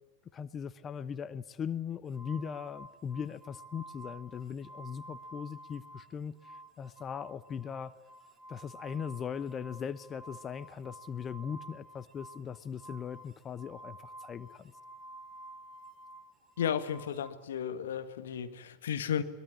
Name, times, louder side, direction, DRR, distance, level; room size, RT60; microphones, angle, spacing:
voice 1, 0.3-7.9 8.5-14.7, left 7 dB, 25° left, 16 dB, 0.9 m, -39 dB
sound 1, 2.1-6.1 6.4-17.3, right 1 dB, 10° right, 2.5 m, -51 dB
voice 2, 16.6-19.2, left 8 dB, 60° left, 9 dB, 1.8 m, -33 dB
22.5 x 22.0 x 9.8 m, 1.0 s
figure-of-eight pair, 90°, 0 cm